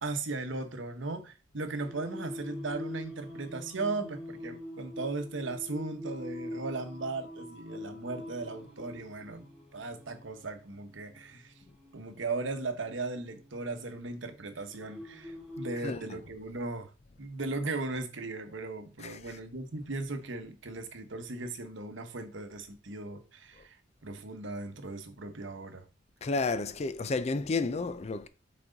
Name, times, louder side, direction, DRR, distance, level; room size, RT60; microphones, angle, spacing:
voice 1, 0.0-9.5 9.7-11.5 11.9-16.9 17.2-23.8 24.0-25.9, right 3 dB, 75° right, 1.0 m, -37 dB
Singing, 1.7-15.8, left 1 dB, ahead, 2.3 m, -45 dB
voice 2, 26.2-28.3, left 3 dB, 35° left, 0.4 m, -31 dB
6.0 x 4.2 x 3.9 m
head